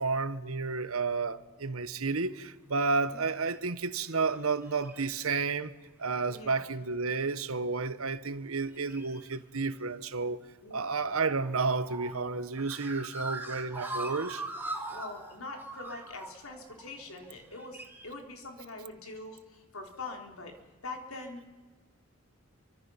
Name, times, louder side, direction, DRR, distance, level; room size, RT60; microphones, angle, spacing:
voice 1, 0.0-5.7 6.0-10.4 10.7-14.4, right 4 dB, 85° right, 1.2 m, -31 dB
sound 1, 3.2-3.3 4.1-4.4 4.6-5.4 6.1-6.4 8.7-9.4 11.1-18.1, right 2 dB, 10° right, 2.5 m, -41 dB
voice 2, 6.3-6.7 10.6-11.3 14.9-20.5 20.8-21.6, left 3 dB, 90° left, 4.1 m, -44 dB
27.5 x 24.5 x 5.8 m
head